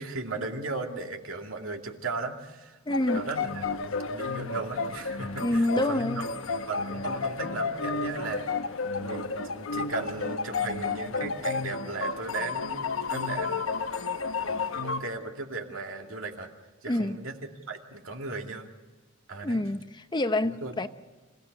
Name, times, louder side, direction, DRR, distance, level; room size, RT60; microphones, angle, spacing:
voice 1, 0.0-2.8 3.1-8.5 9.0-14.0 14.4-16.5 16.8-17.4 17.7-18.7 19.3-19.7 20.4-20.7, right 3 dB, 70° right, 3 dB, 2.5 m, -37 dB
sound 1, 2.9-15.0, left 4 dB, 70° left, 1.0 m, -32 dB
voice 2, 2.9-3.2 5.4-6.3 16.9-17.2 19.4-20.9, left 1 dB, 20° left, 10 dB, 0.8 m, -27 dB
27.0 x 16.5 x 6.6 m, 1.3 s
head